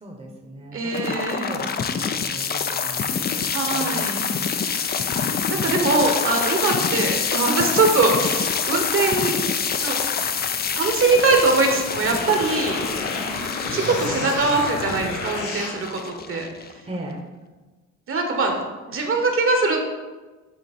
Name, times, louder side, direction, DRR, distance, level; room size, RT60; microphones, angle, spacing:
voice 1, 0.0-4.0 5.5-5.9 16.9-17.3, right 1 dB, 20° right, 0 dB, 0.9 m, -37 dB
voice 2, 0.7-1.6 3.5-4.3 4.8-4.9 5.5-9.4 9.8-10.0 10.3-10.5 10.7-12.8 13.7-16.4 18.1-18.6 18.9-19.8, right 3 dB, 45° right, 3 dB, 1.1 m, -22 dB
sound 1, 0.9-16.9, left 6 dB, 35° left, 0.4 m, -26 dB
sound 2, 11.9-15.8, left 2 dB, 80° left, 1.3 m, -30 dB
8.1 x 2.8 x 4.3 m, 1.2 s
cardioid pair, 90°, 30 cm